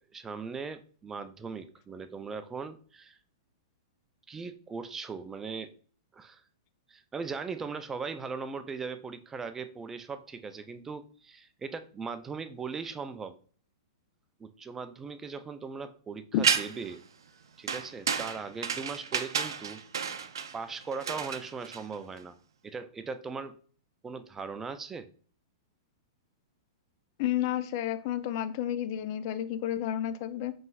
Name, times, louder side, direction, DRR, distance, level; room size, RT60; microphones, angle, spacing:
voice 1, 0.1-3.2 4.3-5.7 6.1-6.4 6.9-13.4 14.4-17.0 17.6-19.8 20.5-22.4 22.6-23.6 24.0-25.1, right 5 dB, 15° right, 10 dB, 0.4 m, -39 dB
sound 1, 16.4-16.9 17.7-22.2, right 7 dB, 80° right, 0.4 m, -31 dB
voice 2, 27.2-30.5, left 11 dB, 50° left, 13 dB, 0.4 m, -31 dB
5.3 x 3.2 x 2.3 m, 0.43 s
hypercardioid pair, 120°, 2 cm